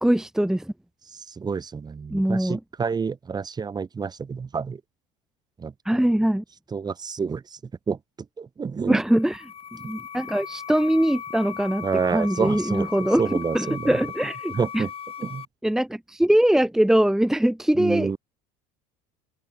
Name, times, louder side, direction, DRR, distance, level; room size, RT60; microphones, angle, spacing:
voice 1, 0.0-0.7 2.1-2.6 5.8-6.4 8.9-9.4 9.8-11.9 12.1-13.2 13.5-14.8 15.6-18.1, right 1 dB, 5° right, 2.4 m, -22 dB
voice 2, 1.1-4.8 5.6-5.7 6.7-7.6 7.9-8.0 8.4-9.0 11.8-14.0 14.5-14.9 15.2-15.5 17.7-18.2, right 5 dB, 25° right, 4.0 m, -28 dB
sound 1, 9.0-15.5, left 8 dB, 30° left, 7.1 m, -37 dB
open air
supercardioid pair, 115°, 18 cm